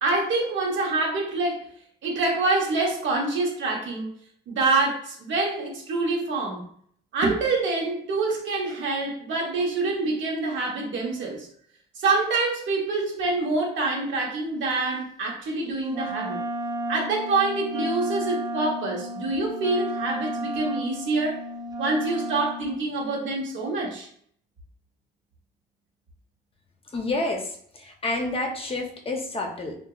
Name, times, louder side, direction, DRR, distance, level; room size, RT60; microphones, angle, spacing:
voice 1, 0.0-1.7 2.0-4.1 4.5-6.7 7.1-11.5 12.0-16.4 16.9-21.4 21.8-24.1, right 3 dB, 70° right, -1 dB, 1.0 m, -26 dB
Wind instrument woodwind instrument, 15.9-22.7, right 1 dB, 20° right, 0.4 m, -32 dB
voice 2, 26.9-29.8, left 2 dB, 30° left, 1 dB, 0.6 m, -29 dB
2.7 x 2.5 x 2.3 m, 0.62 s
cardioid pair, 90°, 20 cm